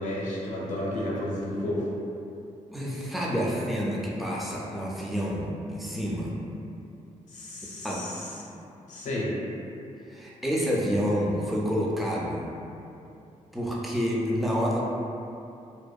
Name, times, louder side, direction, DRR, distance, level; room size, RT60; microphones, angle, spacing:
voice 1, 0.0-1.9 7.3-8.5 8.8-9.4, left 1 dB, 70° left, -5 dB, 0.5 m, -32 dB
voice 2, 2.7-6.3 7.8-8.0 10.1-12.5 13.5-14.8, equal, ahead, -4 dB, 0.3 m, -28 dB
2.6 x 2.1 x 2.3 m, 2.7 s
cardioid pair, 130°, 13 cm